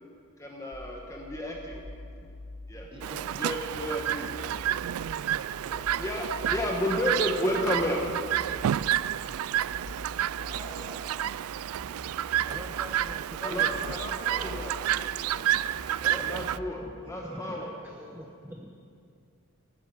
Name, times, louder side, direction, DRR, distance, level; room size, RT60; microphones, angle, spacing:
voice 1, 0.4-1.8 2.7-2.9 3.4-4.3 6.0-8.0 13.4-15.4 16.0-17.7, left 1 dB, 15° left, -1 dB, 1.2 m, -32 dB
sound 1, 0.7-16.7, left 1 dB, 50° left, 1.3 m, -45 dB
voice 2, 2.9-3.4 5.6-5.9 10.4-11.1 13.7-14.6 15.9-16.6 17.0-18.3, right 1 dB, 25° right, -5 dB, 4.0 m, -46 dB
Chirp tweet, 3.0-16.6, right 11 dB, 80° right, 0.3 m, -30 dB
voice 3, 12.3-13.8 16.8-18.7, right 1 dB, 10° right, 1 dB, 0.8 m, -44 dB
13.0 x 10.0 x 9.5 m, 2.4 s
head